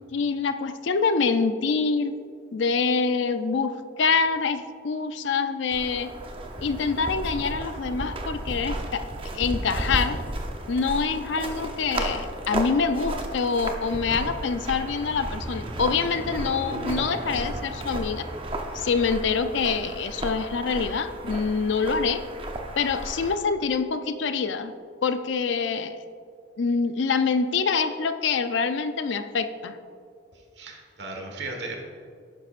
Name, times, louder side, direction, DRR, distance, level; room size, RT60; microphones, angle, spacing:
voice 1, 0.1-2.1 2.5-6.1 6.6-9.0 9.3-10.2 10.7-18.3 18.8-22.2 22.8-24.7 25.0-26.0 26.6-29.8, left 5 dB, 75° left, 10 dB, 0.5 m, -25 dB
sound 1, 5.7-23.4, right 1 dB, 30° right, 0.7 m, -33 dB
voice 2, 30.3-31.8, right 2 dB, 65° right, 2 dB, 1.4 m, -36 dB
11.5 x 9.5 x 2.5 m, 2.4 s
head